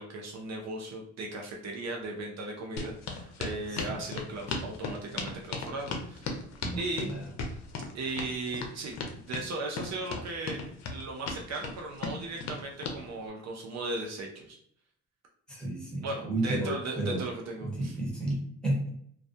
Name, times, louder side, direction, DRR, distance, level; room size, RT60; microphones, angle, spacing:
voice 1, 0.0-6.3 6.8-7.1 7.9-14.6 16.0-17.9, right 2 dB, 60° right, 0 dB, 0.6 m, -37 dB
sound 1, 2.8-13.0, left 4 dB, 60° left, 0.6 m, -36 dB
voice 2, 3.7-4.0 6.6-7.2 15.5-17.3 17.6-18.9, right 1 dB, 5° left, -5 dB, 1.1 m, -32 dB
2.3 x 2.1 x 2.6 m, 0.67 s
cardioid pair, 90°, 30 cm